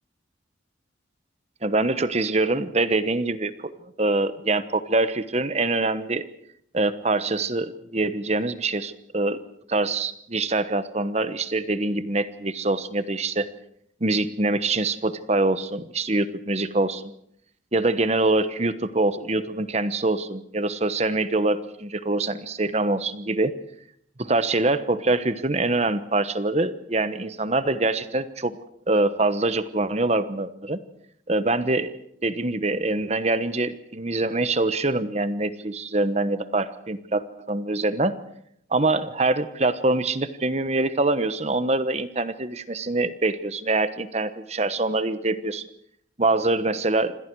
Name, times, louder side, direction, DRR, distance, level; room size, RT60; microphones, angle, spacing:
voice 1, 1.6-3.7 4.0-6.2 6.7-9.4 9.7-13.5 14.0-17.1 17.7-23.5 24.2-28.6 28.9-30.8 31.3-31.9 32.2-38.1 38.7-45.7 46.2-47.2, right 2 dB, 35° right, 13 dB, 1.1 m, -24 dB
27.5 x 26.0 x 4.8 m, 0.69 s
head